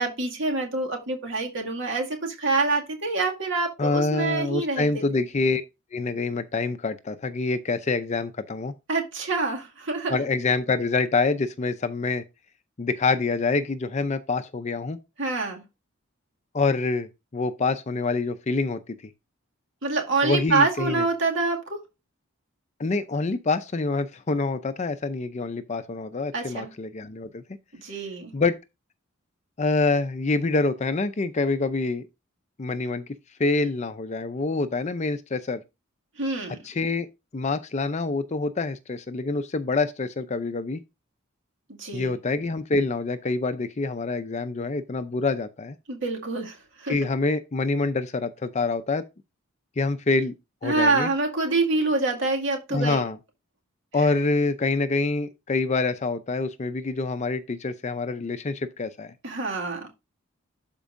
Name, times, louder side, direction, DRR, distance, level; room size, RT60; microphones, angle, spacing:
voice 1, 0.0-5.0 8.9-10.2 15.2-15.6 19.8-21.8 26.3-26.7 27.7-28.3 36.2-36.6 41.8-42.1 45.9-46.9 50.6-53.0 54.0-54.1 59.2-59.9, right 3 dB, 65° right, 2.1 m, -26 dB
voice 2, 3.8-5.6 5.9-8.7 10.1-12.2 12.8-15.0 16.5-18.9 20.2-21.1 22.8-27.4 28.3-28.6 29.6-32.1 32.6-33.0 33.4-35.6 36.6-37.1 37.3-40.8 41.9-45.8 46.9-49.1 49.8-50.3 50.6-51.1 52.7-53.2 53.9-59.1, left 3 dB, 35° left, 0.5 m, -26 dB
12.0 x 4.5 x 2.5 m
head